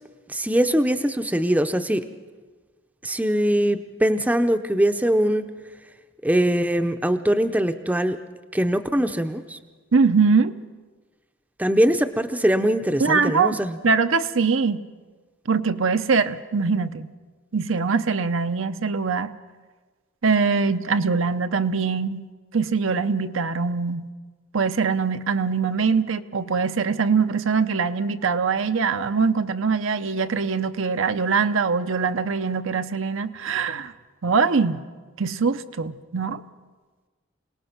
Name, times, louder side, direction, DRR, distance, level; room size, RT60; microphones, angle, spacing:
voice 1, 0.3-2.1 3.0-5.5 6.2-8.2 8.5-9.6 11.6-13.8, right 1 dB, 5° right, 8 dB, 0.6 m, -22 dB
voice 2, 9.9-10.5 13.0-13.6 13.8-14.8 15.5-17.1 17.5-19.3 20.2-22.3 22.5-24.1 24.5-33.9 34.2-34.8 35.2-36.4, right 5 dB, 75° right, 9 dB, 0.7 m, -22 dB
27.0 x 18.5 x 5.9 m, 1.4 s
head